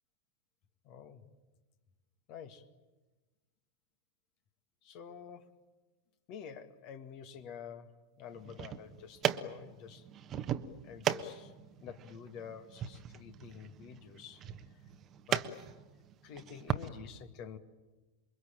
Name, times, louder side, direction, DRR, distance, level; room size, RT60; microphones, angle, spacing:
voice 1, 0.8-1.2 2.3-2.7 4.8-5.5 6.3-10.1 10.8-11.5 11.8-14.4 15.3-15.6 16.2-17.6, left 7 dB, 40° left, 8 dB, 2.0 m, -48 dB
sound 1, 8.3-16.9, right 10 dB, 30° right, 1.2 m, -38 dB
28.0 x 23.0 x 9.0 m, 1.2 s
figure-of-eight pair, 90°, 0 cm